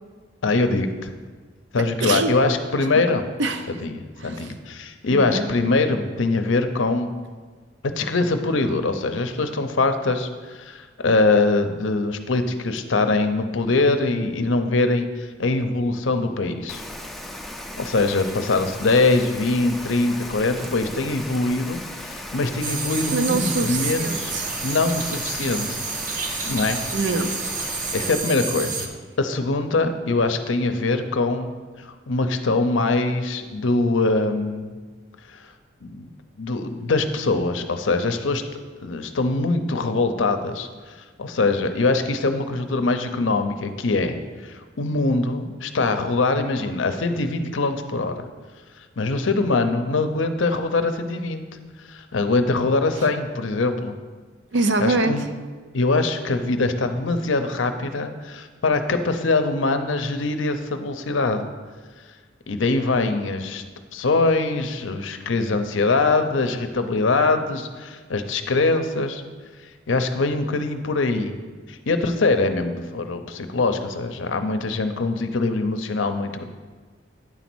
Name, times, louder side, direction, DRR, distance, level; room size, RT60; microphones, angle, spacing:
voice 1, 0.4-1.1 1.7-3.2 3.8-7.1 7.8-16.8 17.8-24.3 24.6-25.8 26.4-26.8 27.9-28.9 29.2-31.5 31.8-34.7 35.3-35.5 35.8-36.1 36.4-38.4 38.8-48.3 49.0-51.4 51.9-53.9 54.8-55.2 55.7-61.5 62.5-63.6 63.9-69.2 69.9-71.3 71.7-76.4, left 3 dB, 80° left, 8 dB, 0.7 m, -23 dB
voice 2, 1.8-2.3 2.9-3.0 3.4-3.8 4.2-4.5 5.1-5.5 20.5-20.7 23.1-24.6 26.9-27.3 54.5-55.3, right 3 dB, 65° right, 8 dB, 0.6 m, -25 dB
Rain, 16.7-28.2, left 1 dB, ahead, 0.5 m, -36 dB
sound 1, 22.6-28.9, right 4 dB, 45° right, 0.9 m, -30 dB
9.7 x 4.1 x 6.1 m, 1.4 s
head